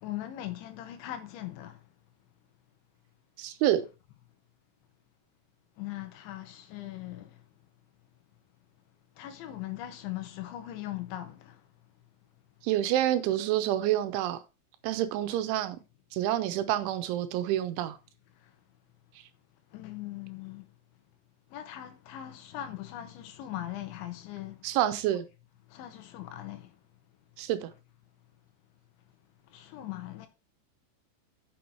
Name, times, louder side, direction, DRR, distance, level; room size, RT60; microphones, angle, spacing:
voice 1, 0.0-1.8 5.8-7.4 9.2-11.6 19.7-20.6 21.5-24.6 25.7-26.7 29.5-30.3, left 13 dB, 75° left, 3.4 m, -40 dB
voice 2, 3.4-3.8 12.6-14.4 14.8-15.8 16.1-18.0 24.6-25.3 27.4-27.7, right 12 dB, 85° right, 3.2 m, -28 dB
7.9 x 6.1 x 4.5 m
omnidirectional pair, 5.6 m